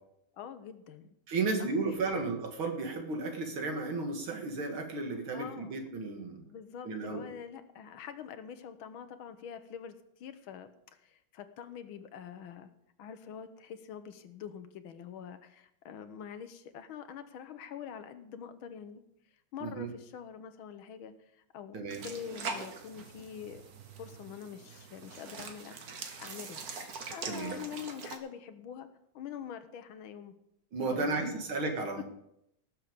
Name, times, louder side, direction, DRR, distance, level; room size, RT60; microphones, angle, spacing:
voice 1, 0.3-1.1 1.6-2.2 5.3-5.8 6.4-9.9 10.2-12.7 13.0-19.0 19.5-23.6 24.0-26.6 27.1-28.9 29.1-30.3 30.8-31.4, left 8 dB, 75° left, 10 dB, 1.7 m, -45 dB
voice 2, 1.3-6.4 6.8-7.3 19.6-19.9 21.7-22.0 27.3-27.6 30.7-32.0, right 3 dB, 75° right, 4 dB, 2.7 m, -33 dB
sound 1, 21.9-28.2, right 4 dB, 50° right, 1.5 m, -43 dB
17.5 x 7.3 x 5.2 m, 0.78 s
omnidirectional pair, 2.3 m